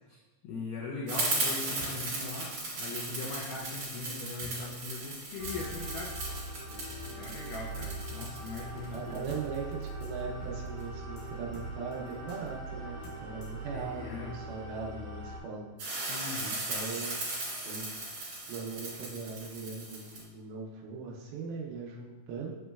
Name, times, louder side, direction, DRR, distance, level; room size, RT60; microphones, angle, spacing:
voice 1, 0.4-6.2 7.2-9.3 13.7-14.3 16.1-16.6, left 3 dB, 90° left, -2 dB, 1.8 m, -40 dB
sound 1, 1.1-10.0 15.8-20.2, right 2 dB, 50° right, 2.3 m, -37 dB
sound 2, 1.8-1.9 2.5-2.6 3.3-3.4 4.0-4.1 4.4-4.5 4.8-4.9 5.2-5.3 5.5-5.7 6.3-6.4 7.0-7.1 7.8-7.9 8.5-8.6 8.9-9.0 9.3-9.4 9.7-9.8 10.0-10.1 10.4-10.5 10.8-10.9 11.2-11.3 11.5-12.0 12.3-12.4 13.0-13.6, left 1 dB, 70° left, 2.1 m, -49 dB
sound 3, 5.4-15.4, right 2 dB, 70° right, 2.3 m, -41 dB
voice 2, 6.7-7.3 8.9-14.0 14.3-15.7 16.0-16.1 16.4-17.2 17.6-18.0 18.5-22.5, right 4 dB, 90° right, -3 dB, 2.5 m, -40 dB
7.8 x 3.0 x 2.3 m, 1.2 s
omnidirectional pair, 4.2 m